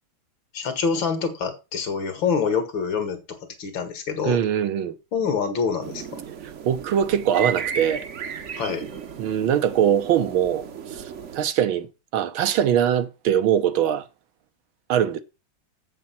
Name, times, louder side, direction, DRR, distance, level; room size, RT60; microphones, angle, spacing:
voice 1, 0.5-4.4 5.1-6.2 8.6-8.9, left 5 dB, 70° left, 2.5 m, -26 dB
voice 2, 4.3-5.0 6.6-8.1 9.2-10.6 10.9-11.0 11.3-14.1 14.9-15.2, right 9 dB, 85° right, 1.8 m, -22 dB
sound 1, 5.8-11.5, right 7 dB, 50° right, 0.9 m, -35 dB
7.5 x 7.5 x 5.8 m
omnidirectional pair, 2.2 m